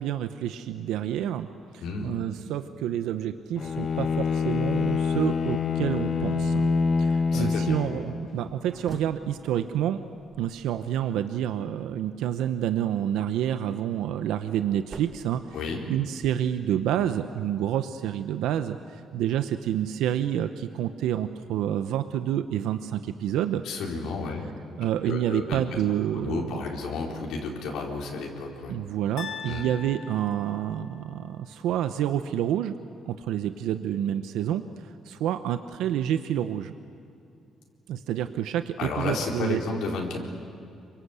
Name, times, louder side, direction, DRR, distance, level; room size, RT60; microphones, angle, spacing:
voice 1, 0.0-1.5 1.7-6.7 7.0-10.0 10.4-15.4 15.9-23.6 24.8-26.6 28.7-32.7 33.1-34.6 35.1-36.7 37.9-39.6, right 10 dB, 90° right, 9 dB, 0.9 m, -28 dB
Bowed string instrument, 3.6-8.4, left 5 dB, 40° left, 1.2 m, -26 dB
voice 2, 7.3-7.8 15.5-15.8 23.6-24.4 24.7-24.8 25.0-25.8 26.1-28.7 29.5-29.6 38.8-40.2, left 4 dB, 75° left, -1 dB, 4.4 m, -32 dB
sound 1, 8.3-11.4 13.6-16.2, right 4 dB, 40° right, 1.5 m, -47 dB
sound 2, 29.2-31.3, left 6 dB, 60° left, 1.6 m, -41 dB
27.0 x 24.5 x 8.2 m, 2.6 s
cardioid pair, 140°, 0 cm